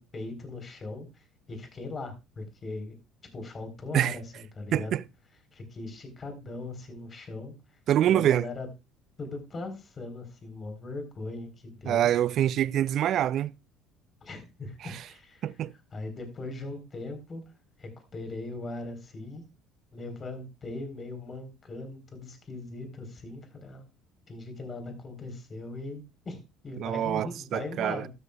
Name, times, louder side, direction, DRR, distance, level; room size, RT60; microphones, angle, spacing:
voice 1, 0.0-2.9 3.3-4.9 5.5-7.5 8.1-8.7 9.2-12.1 14.2-15.5 15.9-17.4 17.8-19.4 19.9-23.8 24.3-28.1, left 2 dB, 35° left, 4.0 m, -39 dB
voice 2, 4.7-5.0 7.9-8.5 11.9-13.5 14.8-15.0 15.4-15.7 26.8-28.0, right 11 dB, 55° right, 0.4 m, -25 dB
13.5 x 13.0 x 2.4 m
hypercardioid pair, 60°, 0 cm